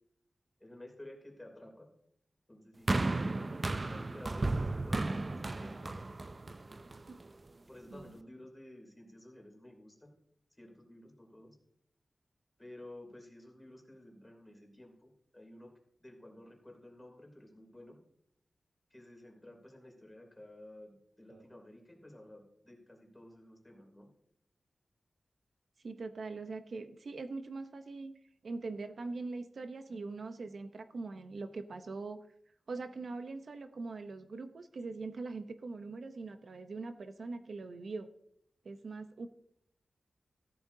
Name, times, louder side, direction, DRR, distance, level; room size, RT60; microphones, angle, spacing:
voice 1, 0.6-1.9 2.5-6.0 7.7-10.1 10.6-11.6 12.6-15.7 16.0-18.0 18.9-24.1, left 1 dB, 15° left, 2 dB, 3.0 m, -53 dB
sound 1, 2.9-7.2 8.0-8.1, right 2 dB, 35° right, 0.4 m, -34 dB
voice 2, 25.8-28.1 28.4-32.2 32.7-38.1 38.6-39.3, right 3 dB, 75° right, 8 dB, 0.7 m, -42 dB
14.0 x 12.0 x 2.7 m, 0.74 s
wide cardioid pair, 115°, 0 cm